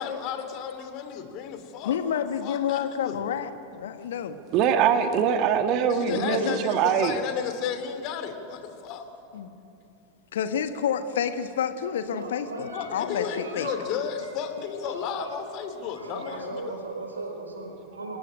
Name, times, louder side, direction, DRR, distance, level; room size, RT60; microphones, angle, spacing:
voice 1, 0.0-2.0 2.4-3.2 5.9-9.1 12.7-16.8, left 8 dB, 40° left, 7 dB, 2.9 m, -33 dB
voice 2, 1.8-4.4 6.0-6.6 9.3-9.5 10.3-13.7, left 8 dB, 60° left, 9 dB, 1.5 m, -29 dB
voice 3, 4.5-7.2, right 8 dB, 40° right, 7 dB, 1.7 m, -23 dB
voice 4, 12.1-12.8 13.2-13.8 14.9-15.4 15.9-18.2, right 2 dB, 75° right, 4 dB, 4.8 m, -37 dB
27.0 x 15.0 x 9.9 m, 2.7 s
figure-of-eight pair, 90°, 0 cm